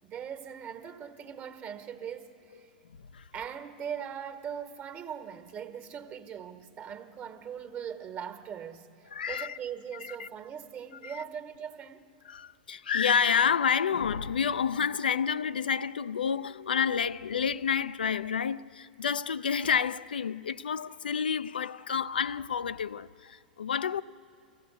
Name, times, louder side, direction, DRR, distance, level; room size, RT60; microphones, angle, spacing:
voice 1, 0.0-2.7 3.3-12.1, right 8 dB, 35° right, 1.5 m, -40 dB
voice 2, 9.1-9.6 10.0-10.3 11.0-11.2 12.3-24.0, left 7 dB, 85° left, 0.4 m, -29 dB
24.0 x 15.5 x 8.0 m
hypercardioid pair, 105°, 5 cm